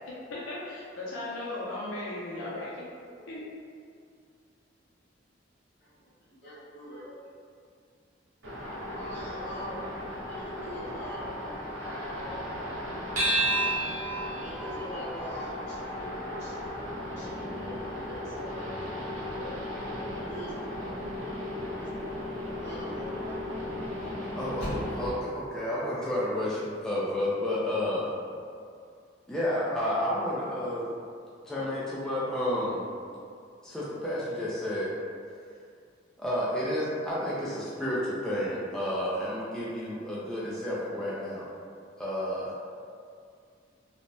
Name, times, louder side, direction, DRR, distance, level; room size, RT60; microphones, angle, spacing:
voice 1, 0.0-3.4, left 2 dB, 80° left, -7 dB, 0.5 m, -37 dB
voice 2, 5.8-7.1 8.6-9.8 10.3-13.0 14.2-16.0 16.3-16.5 17.1-18.8 19.4-19.5 19.8-21.3 21.7-22.0 22.6-23.7, equal, 60° left, -12 dB, 1.3 m, -44 dB
sound 1, 8.4-25.1, left 1 dB, 90° right, 0.8 m, -37 dB
sound 2, 13.2-17.9, right 2 dB, 40° right, 0.7 m, -33 dB
sound 3, 18.8-25.7, equal, 35° left, 1.3 m, -47 dB
voice 3, 24.3-28.1 29.3-30.8 31.5-32.8 33.6-34.9 36.2-41.5 42.0-42.5, left 1 dB, 5° left, -9 dB, 0.3 m, -31 dB
3.2 x 2.0 x 2.6 m, 2.3 s
head